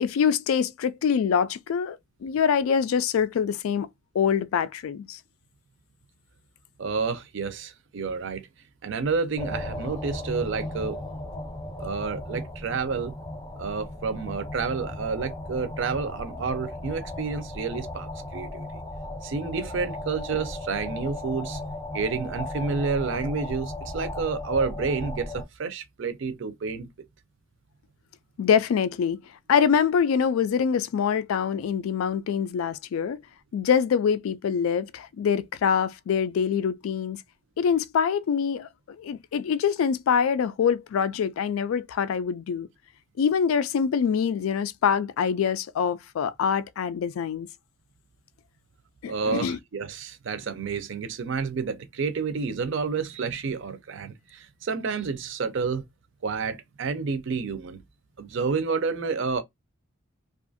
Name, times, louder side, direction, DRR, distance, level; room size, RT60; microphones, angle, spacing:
voice 1, 0.0-3.9 4.1-5.2 28.4-29.2 29.5-33.2 33.5-37.2 37.6-38.7 39.0-42.7 43.2-47.5 49.0-49.6, left 7 dB, 90° left, 0.3 m, -24 dB
voice 2, 6.8-8.5 8.8-11.0 11.8-13.1 13.6-18.7 19.2-21.6 21.9-26.9 49.1-55.8 56.2-57.8 58.2-59.4, right 5 dB, 65° right, 0.5 m, -30 dB
sound 1, 9.4-25.4, left 1 dB, 15° left, 0.5 m, -36 dB
2.5 x 2.4 x 2.5 m
head